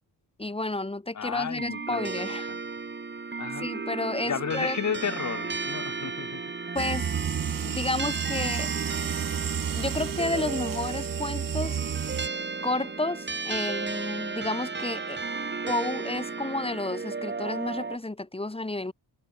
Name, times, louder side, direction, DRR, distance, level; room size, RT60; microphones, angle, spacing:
voice 1, 0.4-2.5 3.6-4.8 6.7-7.1 7.6-8.7 9.7-11.8 12.6-15.2 15.7-18.9, left 2 dB, 15° left, 4.0 m, -31 dB
voice 2, 1.1-2.6 3.4-3.7 4.3-6.4, left 7 dB, 45° left, 2.2 m, -33 dB
sound 1, 1.6-18.0, right 4 dB, 25° right, 3.6 m, -34 dB
sound 2, 6.8-12.3, right 8 dB, 55° right, 2.0 m, -32 dB
cardioid pair, 120°, 40 cm